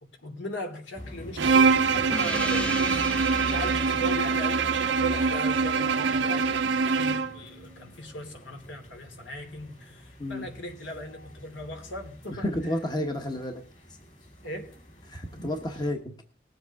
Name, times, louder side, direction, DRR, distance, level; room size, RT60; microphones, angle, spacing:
voice 1, 0.0-12.5 14.4-14.8, equal, 75° left, 2.9 m, -39 dB
sound 1, 0.9-15.9, equal, 40° left, 3.8 m, -43 dB
Bowed string instrument, 1.4-7.4, right 5 dB, 75° right, 0.8 m, -24 dB
Gong, 2.1-7.2, left 1 dB, 5° left, 0.7 m, -38 dB
voice 2, 12.4-13.6 15.1-16.1, left 1 dB, 20° left, 1.1 m, -31 dB
20.0 x 7.9 x 3.5 m
head